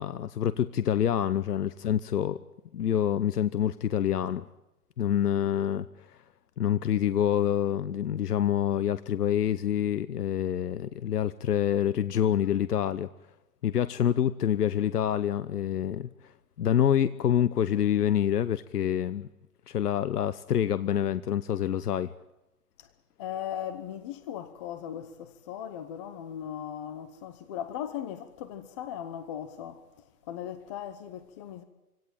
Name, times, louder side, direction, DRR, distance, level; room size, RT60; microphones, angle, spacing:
voice 1, 0.0-2.4 2.7-4.4 5.0-6.2 6.6-13.1 13.6-16.3 16.6-19.3 19.7-22.1, left 10 dB, 85° left, 1.0 m, -27 dB
voice 2, 23.2-29.8 30.3-31.6, left 10 dB, 20° left, 0.9 m, -38 dB
26.0 x 17.0 x 9.1 m
hypercardioid pair, 165°, 45 cm